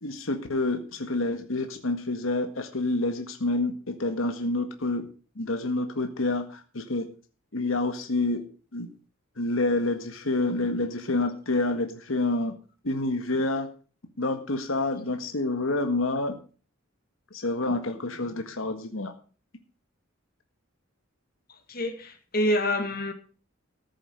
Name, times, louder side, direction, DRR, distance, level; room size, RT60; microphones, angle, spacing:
voice 1, 0.0-5.1 5.3-7.1 7.5-8.4 8.7-8.9 9.4-12.5 12.8-13.7 14.2-16.4 17.3-19.1, left 2 dB, 80° left, 1.7 m, -28 dB
voice 2, 21.7-23.1, left 1 dB, 45° left, 2.0 m, -27 dB
14.5 x 7.6 x 6.5 m
head